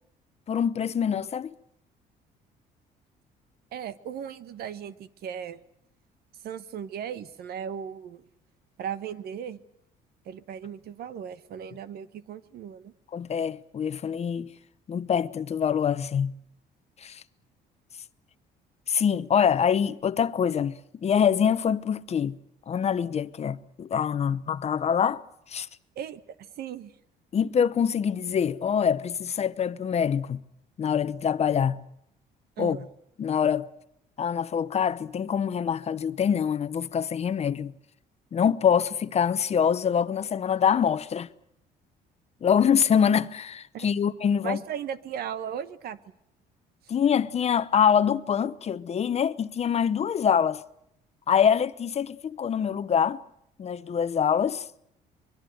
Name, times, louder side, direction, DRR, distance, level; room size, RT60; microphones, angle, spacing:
voice 1, 0.5-1.5 13.1-14.5 14.9-16.3 17.0-17.2 18.9-22.4 22.7-25.2 25.5-25.7 27.3-30.4 30.8-31.8 32.6-32.8 33.2-33.7 34.2-37.7 38.3-41.3 42.4-44.6 46.9-50.6 51.3-53.2 53.6-54.7, left 7 dB, 40° left, 0.9 m, -25 dB
voice 2, 3.7-5.6 6.4-8.2 8.8-9.6 10.2-12.9 25.9-26.2 26.6-26.9 32.6-32.9 43.7-43.9 44.4-46.0, right 8 dB, 65° right, 1.3 m, -36 dB
24.5 x 22.5 x 7.9 m
cardioid pair, 110°, 17 cm